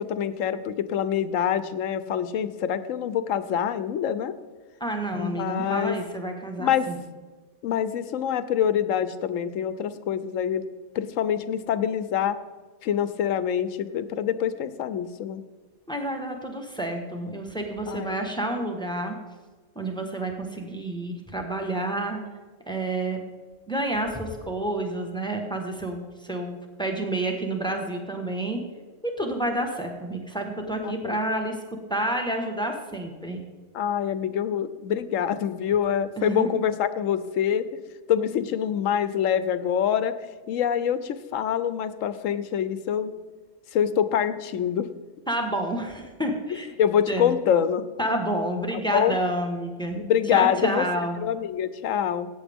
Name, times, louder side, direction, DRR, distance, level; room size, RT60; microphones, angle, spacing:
voice 1, 0.0-4.3 5.2-6.0 6.6-6.9 7.6-10.7 10.9-12.4 12.8-15.4 17.9-18.2 30.8-31.2 33.7-37.8 38.1-40.1 40.5-43.1 43.7-44.9 46.8-47.8 48.9-49.2 49.9-50.8 51.2-52.3, left 9 dB, 80° left, 13 dB, 1.1 m, -25 dB
voice 2, 4.8-7.0 15.9-19.2 19.7-22.2 22.7-23.2 23.7-28.6 29.2-31.6 31.9-33.4 36.2-36.6 45.3-46.7 47.1-47.3 48.0-50.0 50.3-51.2, right 1 dB, 5° left, 3 dB, 1.2 m, -29 dB
16.5 x 8.5 x 3.5 m, 1.4 s
omnidirectional pair, 1.3 m